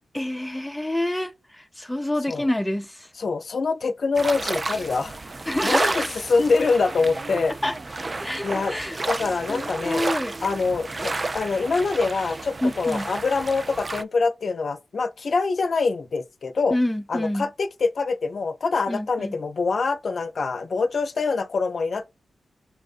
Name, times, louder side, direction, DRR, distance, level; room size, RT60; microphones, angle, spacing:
voice 1, 0.1-3.0 5.5-6.1 7.6-7.7 8.2-9.0 9.5-10.3 12.6-13.1 16.7-17.5 18.9-19.3, left 1 dB, 5° left, 0.6 m, -27 dB
voice 2, 3.2-5.2 5.6-7.6 8.4-8.7 9.1-10.0 10.4-16.8 17.1-22.1, left 4 dB, 60° left, 0.6 m, -25 dB
sound 1, 4.1-14.0, right 2 dB, 35° right, 0.4 m, -31 dB
6.9 x 2.6 x 2.4 m
cardioid pair, 65°, 0 cm